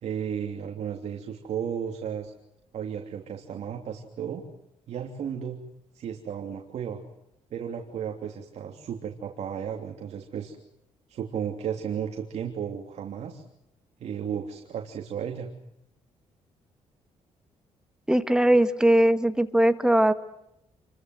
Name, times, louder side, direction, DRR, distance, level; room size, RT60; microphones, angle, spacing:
voice 1, 0.0-2.3 2.7-4.4 4.9-5.6 5.9-7.0 7.5-10.6 11.1-13.4 14.0-15.5, right 8 dB, 65° right, 3 dB, 3.1 m, -34 dB
voice 2, 18.1-20.1, right 1 dB, 5° right, 9 dB, 1.8 m, -20 dB
29.0 x 23.5 x 7.9 m, 0.82 s
cardioid pair, 110°, 12 cm